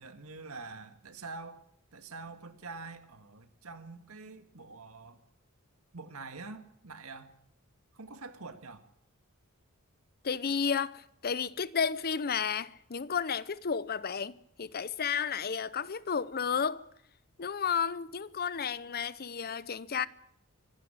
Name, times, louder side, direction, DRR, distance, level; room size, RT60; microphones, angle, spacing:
voice 1, 0.0-1.6 1.9-5.2 5.9-7.3 7.9-8.8, right 3 dB, 80° right, 1.9 m, -45 dB
voice 2, 10.2-16.8 17.4-20.1, left 6 dB, 45° left, 0.7 m, -32 dB
24.0 x 12.5 x 8.8 m
head